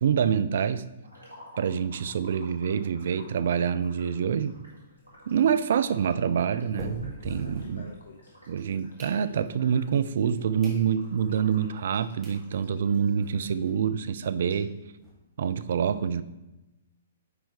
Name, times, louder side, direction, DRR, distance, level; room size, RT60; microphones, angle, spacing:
voice 1, 0.0-0.8 1.6-4.6 5.3-7.9 8.5-14.7 15.4-16.2, right 7 dB, 55° right, 13 dB, 0.3 m, -26 dB
sound 1, 1.0-13.8 14.1-14.2 14.5-14.6, equal, 90° right, 2.0 m, -54 dB
sound 2, 4.5-8.3 8.7-9.7 10.2-10.3 10.6-10.8 11.3-11.4 11.9-12.0 12.2-12.4 12.9-13.0 13.1-13.3 13.5-13.6 13.9-15.1, left 1 dB, 15° right, 1.8 m, -45 dB
voice 2, 7.3-8.3 15.7-15.8, left 4 dB, 65° left, 2 dB, 0.6 m, -46 dB
9.6 x 4.5 x 3.2 m, 0.99 s
figure-of-eight pair, 115°, 0 cm